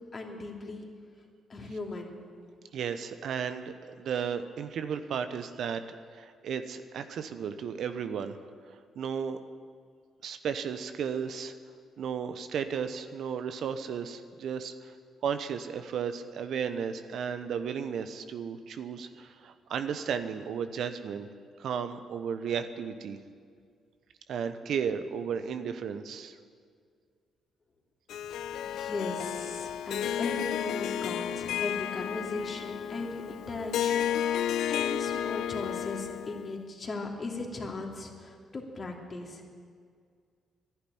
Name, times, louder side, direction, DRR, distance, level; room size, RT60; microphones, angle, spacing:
voice 1, 0.1-0.9 1.5-2.1 28.3-39.4, left 3 dB, 40° left, 0 dB, 2.8 m, -38 dB
voice 2, 2.7-5.8 6.1-8.4 9.0-9.4 10.2-11.5 12.0-14.9 15.2-21.3 21.6-23.2 24.3-26.4, right 7 dB, 70° right, 9 dB, 0.9 m, -34 dB
Harp, 28.1-36.5, left 10 dB, 75° left, 0.4 m, -32 dB
11.5 x 10.5 x 10.0 m, 2.1 s
supercardioid pair, 60°, 0 cm